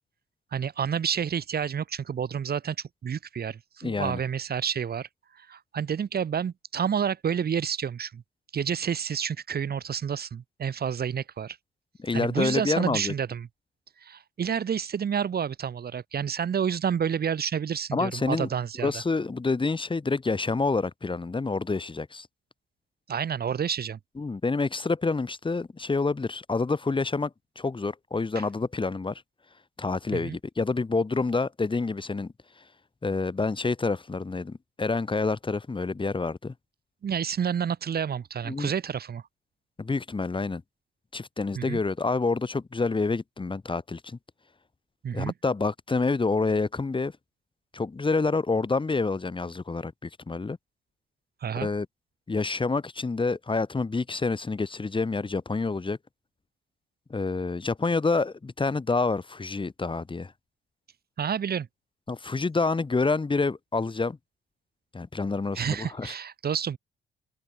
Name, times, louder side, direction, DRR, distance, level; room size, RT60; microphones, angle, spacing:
voice 1, 0.5-2.8 3.0-5.1 5.4-8.2 8.5-11.6 12.1-13.5 14.0-19.0 23.1-24.0 28.3-28.4 30.1-30.4 37.0-39.2 41.5-41.8 45.0-45.3 51.4-51.7 61.2-61.7 65.5-66.8, right 7 dB, 50° right, 4.9 m, -29 dB
voice 2, 3.8-4.2 12.0-13.1 17.9-18.5 18.8-22.3 24.2-29.2 29.8-32.3 33.0-36.5 38.5-38.7 39.8-40.6 41.1-44.2 45.1-47.1 47.7-50.6 51.5-51.9 52.3-56.0 57.1-60.3 62.1-64.2 64.9-66.1, left 3 dB, 25° left, 4.4 m, -28 dB
open air
cardioid pair, 90°, 20 cm